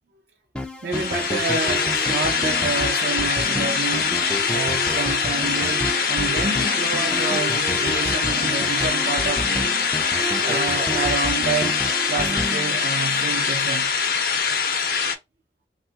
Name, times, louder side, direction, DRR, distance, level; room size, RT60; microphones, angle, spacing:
sound 1, 0.5-13.5, equal, 5° left, 0.3 m, -31 dB
voice 1, 0.8-4.2 4.5-9.8 10.4-13.9, right 4 dB, 55° right, 0.4 m, -29 dB
sound 2, 0.9-15.1, left 6 dB, 50° left, 0.6 m, -23 dB
3.2 x 2.3 x 2.7 m
head